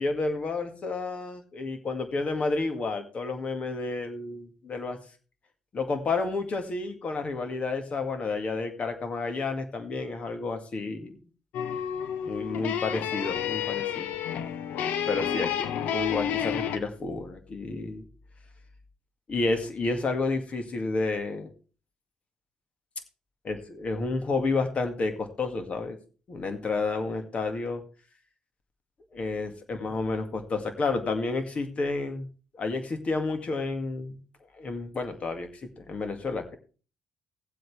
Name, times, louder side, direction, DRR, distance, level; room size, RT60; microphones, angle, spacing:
voice 1, 0.0-5.0 5.7-11.2 12.3-14.2 15.0-15.5 15.9-18.0 19.3-21.5 23.4-26.0 26.3-27.8 29.1-32.3 32.5-34.2 34.5-36.5, left 3 dB, 45° left, 7 dB, 2.1 m, -30 dB
sound 1, 11.5-16.8, left 9 dB, 70° left, 1.0 m, -30 dB
17.5 x 7.8 x 3.4 m, 0.36 s
hypercardioid pair, 55°, 3 cm